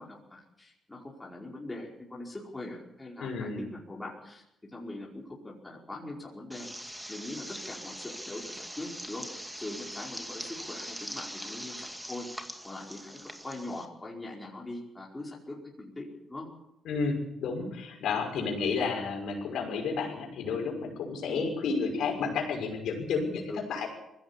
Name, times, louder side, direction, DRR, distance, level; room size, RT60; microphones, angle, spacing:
voice 1, 0.0-16.5 21.3-21.5 23.5-23.6, left 2 dB, 15° left, -3 dB, 5.0 m, -42 dB
voice 2, 3.2-3.6 16.8-23.9, left 5 dB, 75° left, 3 dB, 6.1 m, -31 dB
sound 1, 6.5-13.9, equal, 5° right, 2.3 m, -42 dB
21.0 x 16.0 x 8.6 m, 0.83 s
cardioid pair, 90°, 0 cm